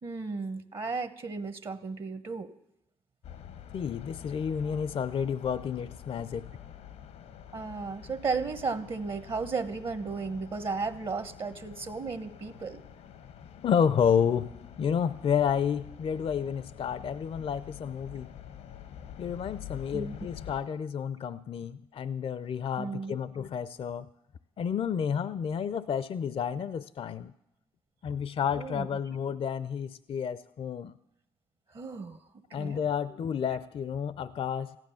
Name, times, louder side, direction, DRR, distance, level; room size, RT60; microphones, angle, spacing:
voice 1, 0.0-2.5 7.5-12.8 19.9-20.2 22.8-23.1 28.6-28.9 31.7-32.3 32.6-32.8, right 4 dB, 50° right, 10 dB, 1.1 m, -34 dB
sound 1, 3.2-20.6, left 9 dB, 85° left, 1.1 m, -47 dB
voice 2, 3.7-6.5 13.6-14.5 14.8-18.3 19.2-24.1 24.6-27.3 28.0-31.0 32.5-34.7, left 7 dB, 55° left, 16 dB, 0.5 m, -30 dB
14.5 x 11.0 x 7.0 m, 0.84 s
supercardioid pair, 60°, 11 cm